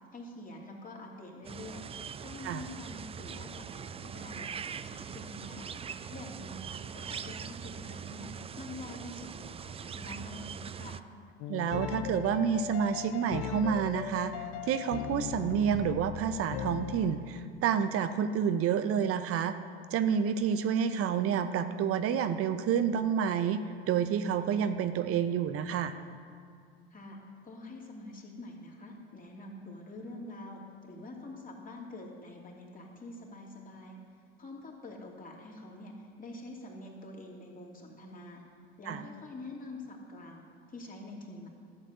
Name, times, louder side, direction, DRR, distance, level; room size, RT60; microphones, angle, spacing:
voice 1, 0.1-1.9 2.2-8.3 8.6-11.0 26.9-27.2 27.4-34.0 34.4-38.4 38.8-41.5, left 2 dB, 25° left, -1 dB, 3.0 m, -46 dB
sound 1, 1.4-11.0, right 7 dB, 20° right, 0.4 m, -42 dB
sound 2, 11.4-17.5, left 11 dB, 60° left, 0.8 m, -38 dB
voice 2, 11.5-19.5 19.9-25.9 38.9-39.0, right 8 dB, 45° right, 10 dB, 0.8 m, -29 dB
12.5 x 7.4 x 8.1 m, 2.3 s
hypercardioid pair, 70°, 31 cm